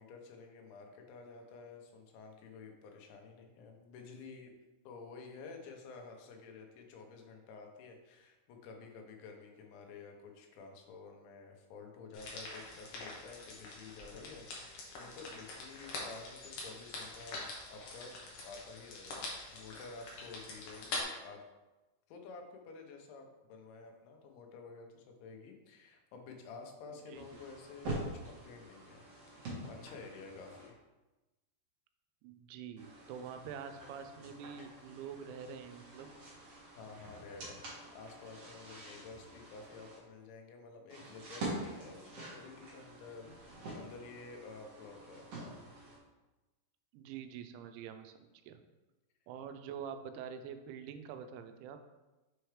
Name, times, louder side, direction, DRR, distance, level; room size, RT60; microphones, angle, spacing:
voice 1, 0.0-4.5 4.9-17.4 17.7-18.1 18.4-21.4 22.1-30.8 36.8-45.6, left 4 dB, 85° left, 3 dB, 3.2 m, -51 dB
sound 1, 12.1-21.0, left 3 dB, 70° left, 2.0 m, -45 dB
sound 2, 27.1-30.7 32.8-40.0 40.9-46.0, right 2 dB, 60° right, 1.6 m, -46 dB
voice 2, 32.2-36.1 46.9-48.6 49.3-51.8, right 7 dB, 85° right, 8 dB, 2.9 m, -46 dB
6.9 x 4.5 x 3.3 m, 1.1 s
omnidirectional pair, 5.2 m